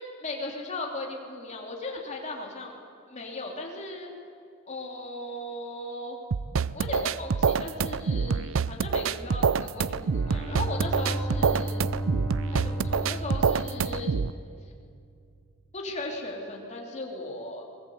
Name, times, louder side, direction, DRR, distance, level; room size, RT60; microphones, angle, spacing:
voice 1, 0.0-2.8 3.1-4.1 4.7-6.2 6.7-11.8 12.5-14.1 15.7-17.6, left 2 dB, 35° left, 0 dB, 3.2 m, -37 dB
sound 1, 6.3-14.3, right 5 dB, 70° right, 0.5 m, -26 dB
Bowed string instrument, 9.8-14.8, right 1 dB, 15° left, 4.0 m, -34 dB
22.5 x 20.5 x 8.0 m, 2.4 s
head